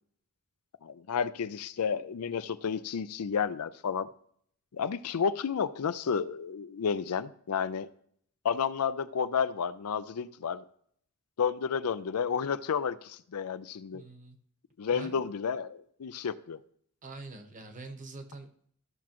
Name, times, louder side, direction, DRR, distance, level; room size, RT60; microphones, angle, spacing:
voice 1, 0.8-4.1 4.7-7.9 8.4-10.6 11.4-14.0 14.8-16.6, left 6 dB, 75° left, 14 dB, 0.5 m, -31 dB
voice 2, 13.9-14.4 14.9-15.3 17.0-18.7, right 3 dB, 35° right, 6 dB, 1.0 m, -45 dB
13.5 x 6.1 x 3.0 m, 0.64 s
head